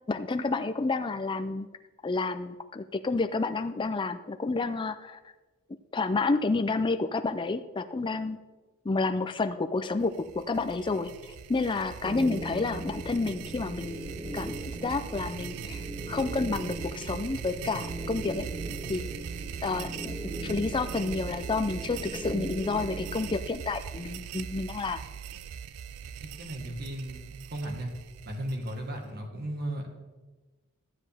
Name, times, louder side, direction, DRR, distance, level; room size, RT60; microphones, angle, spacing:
voice 1, 0.1-1.7 2.0-5.2 5.9-8.4 8.8-11.1 11.5-14.0 14.3-14.5 14.8-18.5 18.9-19.1 19.6-20.1 20.4-25.0, left 3 dB, 20° left, 8 dB, 0.4 m, -30 dB
sound 1, 10.0-29.1, right 8 dB, 80° right, 0.4 m, -40 dB
sound 2, 12.0-23.4, equal, 15° right, 0.8 m, -40 dB
voice 2, 26.4-27.2 27.5-27.9 28.3-29.9, right 1 dB, 45° right, 3 dB, 1.5 m, -35 dB
12.5 x 7.5 x 3.4 m, 1.2 s
head